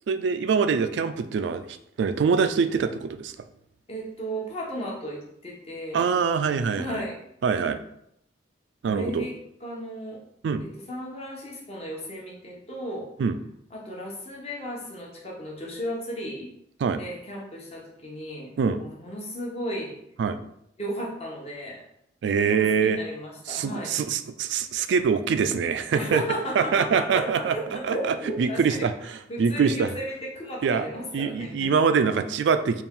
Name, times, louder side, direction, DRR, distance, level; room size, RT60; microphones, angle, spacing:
voice 1, 0.1-3.3 5.9-7.0 7.4-7.8 8.8-9.3 10.4-10.6 13.2-13.4 16.8-17.0 18.6-18.8 20.2-20.4 22.2-23.0 23.5-26.2 26.6-27.6 27.8-29.9 30.6-30.9 31.1-32.8, right 6 dB, 70° right, 10 dB, 0.3 m, -24 dB
voice 2, 3.9-6.1 6.8-7.2 8.8-9.3 9.6-10.2 10.6-13.1 13.7-16.5 16.9-20.0 20.8-21.8 22.3-23.9 25.9-28.9 29.3-31.7, equal, 35° left, -2 dB, 0.9 m, -34 dB
4.2 x 2.4 x 3.6 m, 0.76 s
head